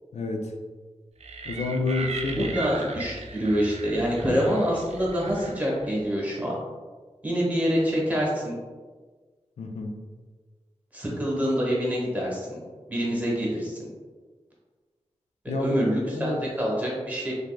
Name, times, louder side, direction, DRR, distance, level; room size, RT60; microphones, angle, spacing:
voice 1, 0.1-0.5 1.5-2.5 9.6-10.0 15.5-16.4, left 3 dB, 85° left, 3 dB, 0.4 m, -29 dB
sound 1, 1.2-6.0, right 3 dB, 75° right, 0.4 m, -38 dB
voice 2, 2.4-6.6 7.2-8.6 10.9-12.6 12.9-13.9 15.6-17.3, equal, 15° right, -4 dB, 1.0 m, -26 dB
3.5 x 3.3 x 2.2 m, 1.4 s
wide cardioid pair, 100°, 11 cm